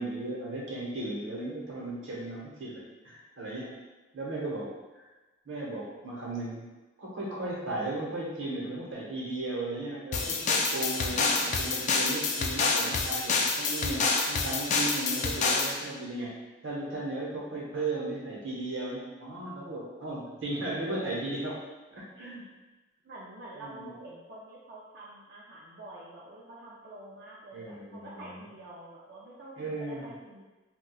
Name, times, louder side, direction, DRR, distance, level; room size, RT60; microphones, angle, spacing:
voice 1, 0.0-3.7 4.1-4.7 5.5-6.6 7.0-21.6 21.9-22.4 23.6-23.9 27.5-28.4 29.6-30.1, right 2 dB, 90° right, -4 dB, 0.9 m, -36 dB
sound 1, 10.1-15.8, left 4 dB, 40° left, 0.3 m, -28 dB
voice 2, 23.0-30.5, right 1 dB, 60° right, -6 dB, 0.5 m, -47 dB
4.3 x 2.3 x 2.3 m, 1.1 s
head